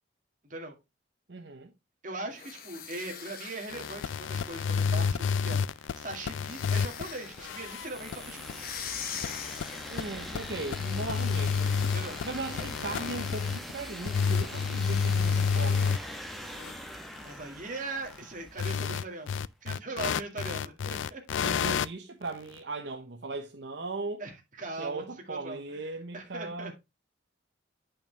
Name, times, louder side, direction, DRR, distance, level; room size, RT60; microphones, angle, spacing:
voice 1, 1.3-1.7 9.9-11.7 12.2-16.0 21.4-24.2 24.8-26.7, right 3 dB, 65° right, 0.9 m, -38 dB
voice 2, 2.0-8.6 11.9-12.2 12.6-12.7 17.2-21.2 24.2-26.7, right 2 dB, 45° right, 2.1 m, -40 dB
sound 1, 2.3-5.3 6.4-7.5 8.4-10.2, left 7 dB, 50° left, 1.1 m, -42 dB
sound 2, 3.7-7.1 7.4-13.7 14.0-16.2 16.6-16.7 18.6-21.9, left 6 dB, 90° left, 0.3 m, -30 dB
sound 3, 5.7-19.2, equal, ahead, 1.1 m, -44 dB
8.8 x 5.6 x 3.3 m
head